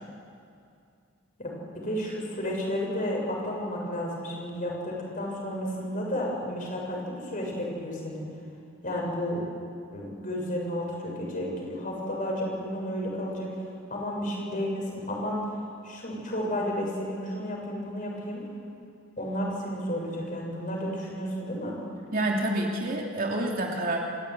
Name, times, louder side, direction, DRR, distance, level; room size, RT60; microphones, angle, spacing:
voice 1, 1.4-8.3 8.8-9.4 9.9-15.5 15.8-18.4 19.2-21.8, equal, 40° left, -2 dB, 7.1 m, -32 dB
voice 2, 22.1-24.0, right 1 dB, 45° right, -1 dB, 2.9 m, -28 dB
27.0 x 16.5 x 9.6 m, 2.4 s
head